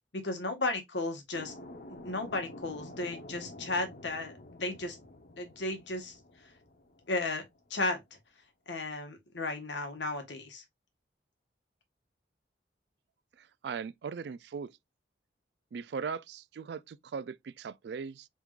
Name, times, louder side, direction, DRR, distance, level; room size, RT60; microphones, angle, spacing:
voice 1, 0.1-1.5 1.9-5.0 5.4-6.2 7.1-7.4 7.7-8.0 8.7-10.6, left 2 dB, 75° left, 1.5 m, -34 dB
sound 1, 1.3-7.7, left 1 dB, 55° left, 0.9 m, -49 dB
voice 2, 13.6-14.7 15.7-18.3, right 6 dB, 65° right, 0.3 m, -39 dB
4.7 x 3.6 x 2.4 m
head